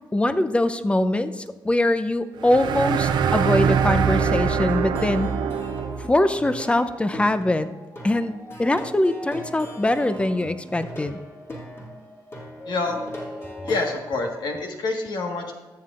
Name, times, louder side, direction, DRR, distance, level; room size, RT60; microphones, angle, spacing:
voice 1, 0.1-5.3 6.0-7.7 8.0-11.2, left 1 dB, 15° left, 12 dB, 0.6 m, -22 dB
sound 1, 2.4-6.2, right 7 dB, 75° right, 0.6 m, -23 dB
Plucked string instrument, 4.1-13.9, left 1 dB, 30° left, 2.4 m, -39 dB
voice 2, 12.6-13.0 13.6-15.5, left 3 dB, 70° left, 2 dB, 1.5 m, -27 dB
13.0 x 7.5 x 2.5 m, 1.3 s
cardioid pair, 75°, 8 cm